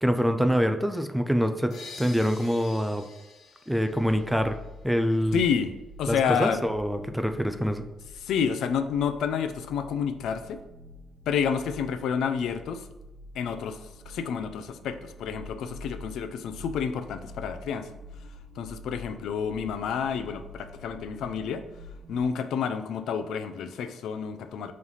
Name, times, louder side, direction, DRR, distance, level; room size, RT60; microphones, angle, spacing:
voice 1, 0.0-3.0 3.7-4.6 4.8-5.4 6.1-7.8, equal, ahead, 8 dB, 0.3 m, -25 dB
sound 1, 1.7-5.3, left 3 dB, 60° left, 1.2 m, -48 dB
sound 2, 5.0-22.2, left 1 dB, 65° right, 0.5 m, -47 dB
voice 2, 5.3-5.7 6.0-6.6 8.2-10.6 11.3-12.8 13.3-13.8 14.1-17.9 18.6-21.6 22.1-24.7, left 7 dB, 80° left, 10 dB, 0.4 m, -29 dB
5.5 x 3.2 x 5.4 m, 1.0 s
cardioid pair, 155°, 0 cm